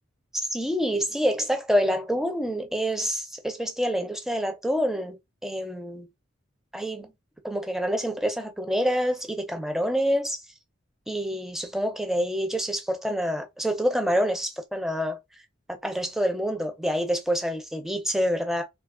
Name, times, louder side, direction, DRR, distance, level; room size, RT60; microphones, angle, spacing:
voice 1, 0.5-5.2 5.4-6.1 6.7-7.1 7.4-10.4 11.1-15.2 15.8-18.6, equal, ahead, 0.5 m, -27 dB
2.8 x 2.3 x 3.6 m
head